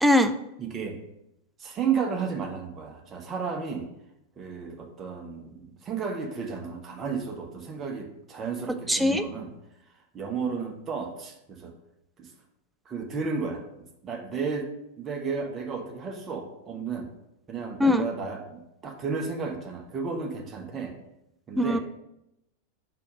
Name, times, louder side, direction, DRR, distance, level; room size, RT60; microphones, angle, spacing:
voice 1, 0.0-0.3 8.9-9.2 17.8-18.0 21.6-21.8, left 1 dB, 5° right, 8 dB, 0.4 m, -21 dB
voice 2, 0.6-1.0 1.6-3.9 4.4-9.5 10.1-11.7 12.2-12.3 12.8-14.7 15.0-17.1 17.5-20.9 21.5-21.8, right 5 dB, 25° right, 2 dB, 1.1 m, -33 dB
5.1 x 4.9 x 4.8 m, 0.85 s
figure-of-eight pair, 90°, 0 cm